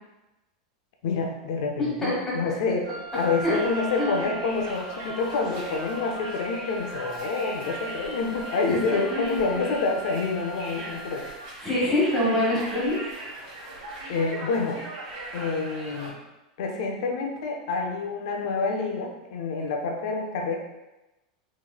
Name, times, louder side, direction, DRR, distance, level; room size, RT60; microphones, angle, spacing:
voice 1, 1.0-11.3 14.1-14.8 15.3-16.2 16.6-20.6, left 4 dB, 65° left, 2 dB, 0.5 m, -28 dB
voice 2, 1.8-2.1 3.4-3.6 4.0-4.3 9.1-9.7 11.6-13.0, left 1 dB, 10° left, -8 dB, 1.1 m, -25 dB
Wind instrument woodwind instrument, 2.8-11.5, right 1 dB, 80° right, 1.0 m, -40 dB
Conversation, 3.1-16.1, right 1 dB, 45° right, 1.2 m, -39 dB
3.7 x 3.0 x 2.2 m, 1.0 s
supercardioid pair, 165°, 4 cm